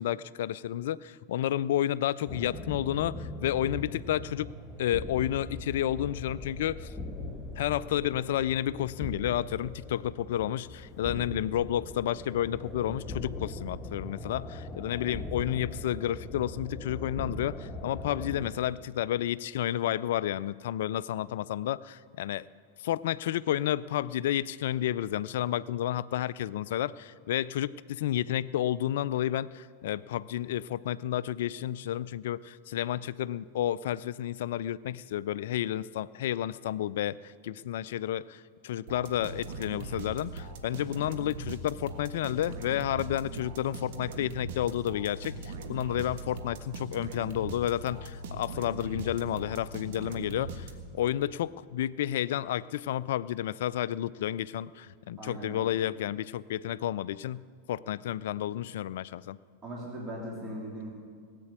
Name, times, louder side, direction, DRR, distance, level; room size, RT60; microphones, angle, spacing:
voice 1, 0.0-4.5 4.8-6.9 7.6-22.5 22.8-50.7 50.9-59.4, left 12 dB, 55° left, 19 dB, 0.3 m, -31 dB
sound 1, 2.3-18.5, left 2 dB, 10° left, 1.7 m, -40 dB
sound 2, 38.9-51.1, right 2 dB, 50° right, 1.5 m, -40 dB
voice 2, 55.2-55.7 59.6-60.9, right 1 dB, 25° right, -3 dB, 3.0 m, -39 dB
18.0 x 8.3 x 8.4 m, 2.1 s
figure-of-eight pair, 90°, 0 cm